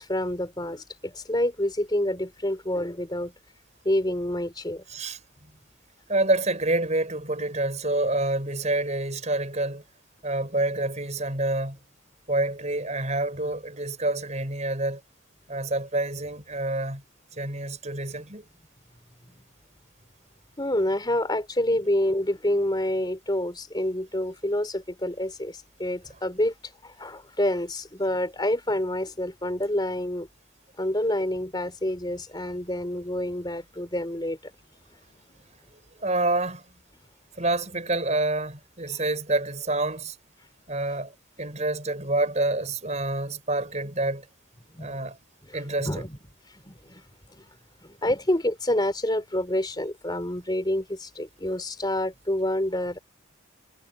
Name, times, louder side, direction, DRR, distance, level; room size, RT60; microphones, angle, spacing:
voice 1, 0.0-3.3 3.8-4.8 20.6-26.5 26.8-30.3 30.8-34.5 44.7-45.0 45.4-45.6 45.8-46.2 46.5-47.0 47.3-47.5 47.8-53.0, left 1 dB, 20° left, 3.7 m, -28 dB
voice 2, 6.1-9.9 10.2-11.8 12.3-15.0 15.5-17.0 17.4-18.4 35.3-35.6 36.0-36.6 37.4-40.2 40.7-44.3 44.8-45.2 45.5-46.0, right 2 dB, 35° right, 5.6 m, -27 dB
head